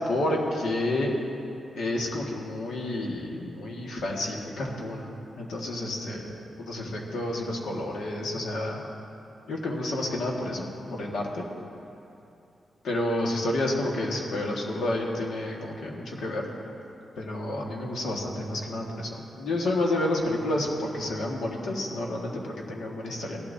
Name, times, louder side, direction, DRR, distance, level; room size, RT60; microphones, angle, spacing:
voice 1, 0.1-1.1 1.8-8.9 9.5-11.4 12.8-16.4 17.2-23.4, left 1 dB, 90° left, -1 dB, 1.7 m, -30 dB
17.5 x 11.5 x 2.8 m, 2.7 s
wide cardioid pair, 175°, 0 cm